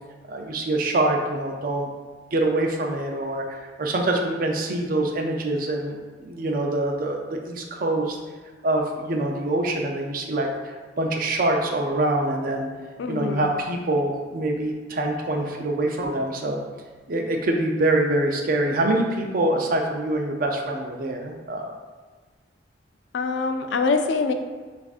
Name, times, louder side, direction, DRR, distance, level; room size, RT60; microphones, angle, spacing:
voice 1, 0.3-1.9 2.3-6.0 6.2-8.2 8.6-10.5 11.0-12.7 13.1-16.6 17.1-21.7, right 2 dB, 50° right, 2 dB, 0.5 m, -25 dB
voice 2, 13.0-13.4 23.1-24.3, left 4 dB, 85° left, 7 dB, 0.4 m, -24 dB
6.7 x 2.5 x 2.4 m, 1.4 s
head